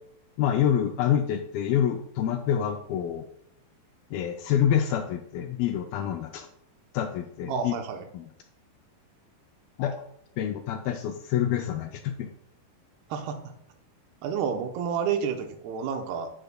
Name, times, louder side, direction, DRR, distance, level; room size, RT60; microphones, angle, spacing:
voice 1, 0.4-3.2 4.1-6.5 6.9-7.7 8.1-8.3 9.8-10.0 10.4-12.3, left 9 dB, 85° left, 6 dB, 2.2 m, -27 dB
voice 2, 7.5-8.0 13.1-13.4 14.2-16.3, right 7 dB, 80° right, 5 dB, 2.7 m, -30 dB
10.0 x 9.4 x 2.2 m, 0.73 s
omnidirectional pair, 4.7 m